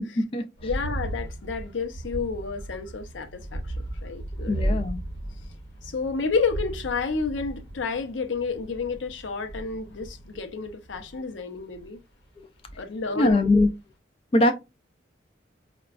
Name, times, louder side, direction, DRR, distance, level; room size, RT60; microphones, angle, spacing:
voice 1, 0.6-3.8 4.0-4.8 5.8-12.0 12.8-13.5, left 4 dB, 85° left, 0.6 m, -30 dB
sound 1, 0.6-11.9 12.7-13.1 13.5-13.6, right 1 dB, 60° left, 1.2 m, -35 dB
voice 2, 4.5-5.0 13.2-13.7 14.3-14.5, left 2 dB, 30° left, 0.3 m, -21 dB
4.8 x 2.2 x 2.3 m
head